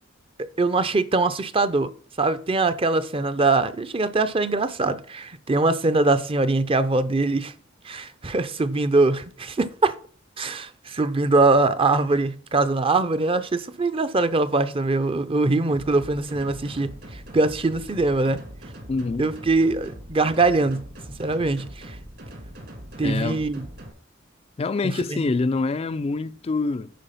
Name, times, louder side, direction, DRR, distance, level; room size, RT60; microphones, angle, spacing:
voice 1, 0.4-1.9 2.2-7.5 7.8-9.9 10.4-18.4 19.2-20.8 21.2-22.0 23.0-23.7 24.8-25.3, right 3 dB, 30° right, 0.6 m, -22 dB
sound 1, 15.7-23.9, equal, 55° right, 2.4 m, -41 dB
voice 2, 18.9-19.3 23.0-23.4 24.6-26.9, left 3 dB, 30° left, 0.4 m, -25 dB
10.5 x 4.6 x 5.7 m
head